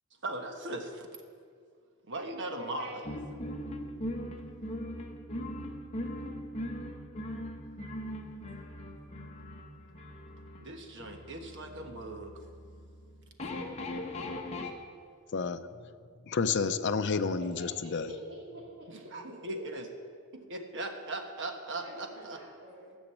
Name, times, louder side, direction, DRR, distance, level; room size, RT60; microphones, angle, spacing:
voice 1, 0.2-1.1 2.1-3.0 10.6-12.3 18.9-19.9 20.3-22.4, right 2 dB, 55° right, 1.2 m, -39 dB
voice 2, 2.5-3.1 17.6-19.1 19.5-19.7 21.8-23.0, equal, 85° right, 3.2 m, -46 dB
sound 1, 3.0-14.7, left 1 dB, 30° left, 1.0 m, -40 dB
voice 3, 16.3-18.1, left 5 dB, 50° left, 0.6 m, -30 dB
13.5 x 6.3 x 8.3 m
head